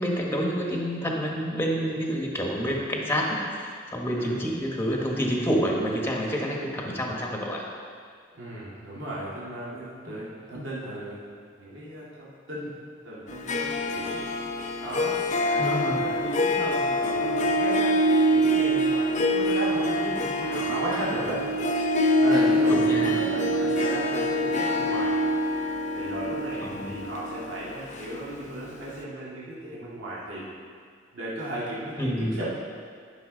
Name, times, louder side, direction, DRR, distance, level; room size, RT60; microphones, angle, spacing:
voice 1, 0.0-7.6 15.6-16.0 22.7-23.2 23.6-23.7 26.6-27.0 32.0-32.4, equal, 10° left, -1 dB, 1.2 m, -28 dB
voice 2, 8.3-11.2 11.6-12.8 13.0-14.2 14.8-18.0 18.3-21.4 22.2-25.2 25.9-30.5 31.1-32.5, right 1 dB, 70° right, -7 dB, 2.0 m, -35 dB
Harp, 13.3-28.6, equal, 40° left, 0.6 m, -25 dB
12.5 x 5.9 x 3.8 m, 2.1 s
head